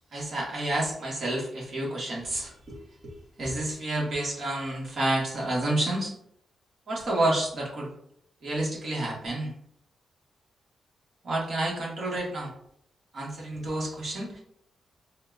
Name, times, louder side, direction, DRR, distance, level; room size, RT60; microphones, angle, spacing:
voice 1, 0.1-2.8 3.0-3.1 3.4-6.1 6.9-7.9 8.4-9.5 11.2-12.5 13.1-14.4, right 1 dB, 55° right, -3 dB, 1.6 m, -29 dB
4.2 x 2.3 x 3.9 m, 0.69 s
wide cardioid pair, 125°, 0 cm